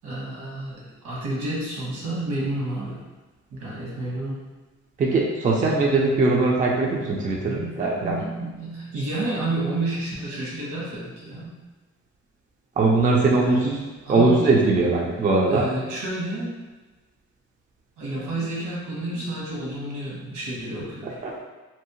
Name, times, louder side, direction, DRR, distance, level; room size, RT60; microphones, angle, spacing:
voice 1, 0.0-3.0 3.5-4.4 7.4-11.5 13.3-13.7 14.0-14.4 15.5-16.6 18.0-21.2, right 2 dB, 70° right, -5 dB, 1.2 m, -30 dB
voice 2, 5.0-8.2 12.8-13.8 14.1-15.7 21.2-21.3, right 3 dB, 25° right, -2 dB, 0.4 m, -20 dB
2.7 x 2.0 x 2.7 m, 1.2 s
cardioid pair, 90°, 30 cm